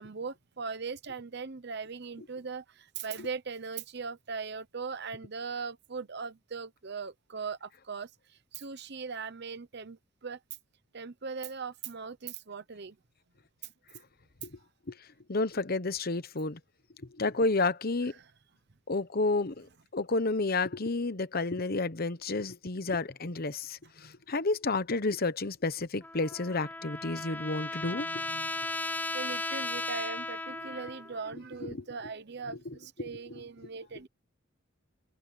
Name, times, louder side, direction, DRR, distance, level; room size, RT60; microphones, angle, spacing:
voice 1, 0.0-10.4 10.9-13.0 24.0-24.2 28.0-28.5 29.1-34.1, right 5 dB, 55° right, 0.9 m, -40 dB
voice 2, 14.9-16.6 17.1-18.1 18.9-28.1 31.6-31.8 32.6-33.1, left 3 dB, 50° left, 1.0 m, -31 dB
Trumpet, 26.0-31.2, left 2 dB, 10° left, 0.5 m, -36 dB
head